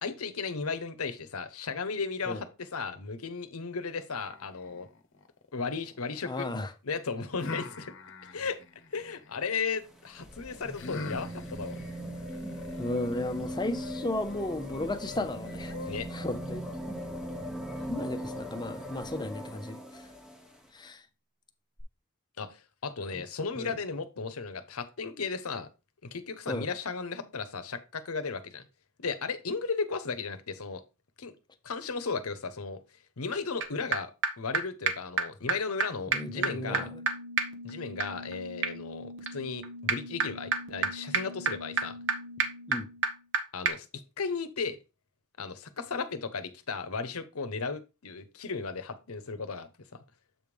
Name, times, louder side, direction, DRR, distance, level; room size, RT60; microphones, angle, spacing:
voice 1, 0.0-4.9 5.5-6.5 6.8-7.9 8.3-8.6 8.9-11.8 15.8-16.1 22.4-25.7 26.0-28.6 29.0-30.8 31.2-31.3 31.6-32.8 33.2-34.1 34.4-36.9 37.6-42.0 43.5-43.9 44.2-44.8 45.4-49.7, left 4 dB, 85° left, 0.9 m, -35 dB
sound 1, 4.1-6.4 7.4-9.5 10.7-16.3, left 2 dB, 60° left, 0.9 m, -44 dB
voice 2, 6.2-6.7 12.8-15.7 16.1-16.6 17.9-19.8 20.7-21.0 23.1-23.2 23.6-23.7 26.5-26.7 36.1-37.0 42.7-42.9, left 2 dB, 20° left, 0.7 m, -34 dB
sound 2, 9.6-20.6 21.8-21.9, equal, ahead, 1.0 m, -39 dB
sound 3, 33.6-33.7 33.9-34.0 34.2-34.3 34.5-34.6 34.9-35.0 35.2-35.3 35.5-35.6 35.8-35.9 36.1-43.4 43.7-43.8, right 5 dB, 65° right, 1.1 m, -31 dB
7.7 x 3.3 x 5.2 m
head